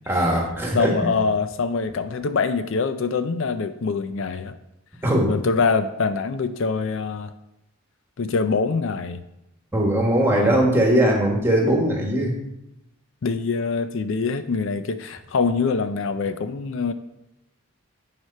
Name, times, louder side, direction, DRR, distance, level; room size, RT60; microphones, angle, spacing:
voice 1, 0.1-0.9 5.0-5.3 9.7-12.3, right 1 dB, 10° right, 0 dB, 1.5 m, -20 dB
voice 2, 0.7-4.5 5.3-7.3 8.2-9.2 10.4-10.6 13.2-16.9, left 4 dB, 60° left, 10 dB, 0.4 m, -24 dB
9.4 x 5.0 x 5.4 m, 0.89 s
head